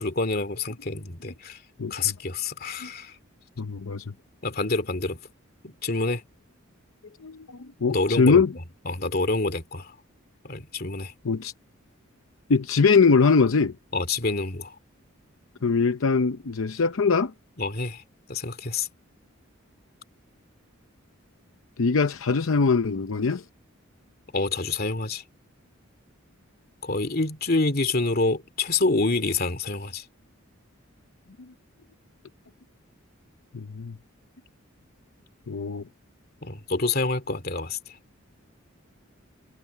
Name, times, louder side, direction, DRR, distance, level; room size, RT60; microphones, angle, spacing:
voice 1, 0.0-1.6 1.9-3.2 4.4-5.2 5.6-6.2 7.9-9.6 10.4-11.1 13.9-14.6 17.6-18.0 18.3-18.9 24.3-25.2 26.8-30.0 36.4-37.8, left 3 dB, 45° left, 2.5 m, -27 dB
voice 2, 1.8-2.1 2.8-2.9 3.6-4.0 7.2-8.5 11.2-11.5 12.5-13.7 15.6-17.3 21.8-23.4 33.5-34.0 35.5-35.8, left 4 dB, 75° left, 0.7 m, -22 dB
head